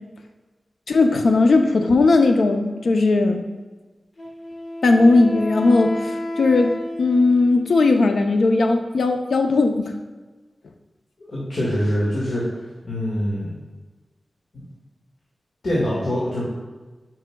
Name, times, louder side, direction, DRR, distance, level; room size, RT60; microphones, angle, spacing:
voice 1, 0.9-3.4 4.8-6.0 6.4-6.7 7.0-9.9, left 3 dB, 85° left, 5 dB, 0.5 m, -17 dB
Wind instrument woodwind instrument, 4.2-7.8, left 1 dB, 40° left, 1.1 m, -31 dB
voice 2, 11.2-12.4 12.8-13.5 15.6-16.4, equal, 70° left, -7 dB, 1.7 m, -24 dB
9.2 x 5.5 x 2.3 m, 1.3 s
wide cardioid pair, 90°, 0 cm